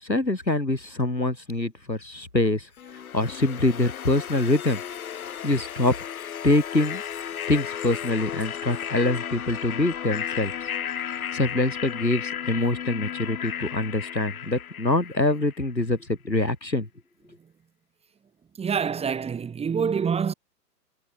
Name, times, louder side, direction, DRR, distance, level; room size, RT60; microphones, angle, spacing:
voice 1, 0.0-2.7 3.1-4.8 5.4-5.9 6.4-7.0 7.5-10.5 11.3-16.9, left 2 dB, 90° left, 6.5 m, -24 dB
sound 1, 2.8-15.7, left 9 dB, 55° left, 6.0 m, -34 dB
voice 2, 18.6-20.3, right 6 dB, 10° right, 5.5 m, -26 dB
figure-of-eight pair, 115°, 50 cm